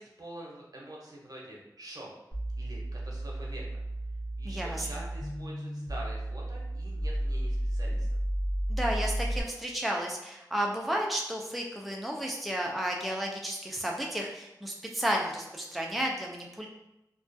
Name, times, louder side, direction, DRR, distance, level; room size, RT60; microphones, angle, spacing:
voice 1, 0.0-2.1 2.6-3.6 4.4-8.1, right 1 dB, 60° right, -3 dB, 0.7 m, -45 dB
sound 1, 2.3-9.4, right 1 dB, 65° left, 0.8 m, -33 dB
voice 2, 4.4-5.1 8.7-16.7, right 1 dB, ahead, -1 dB, 0.3 m, -32 dB
2.3 x 2.2 x 2.5 m, 0.91 s
wide cardioid pair, 50°, 7 cm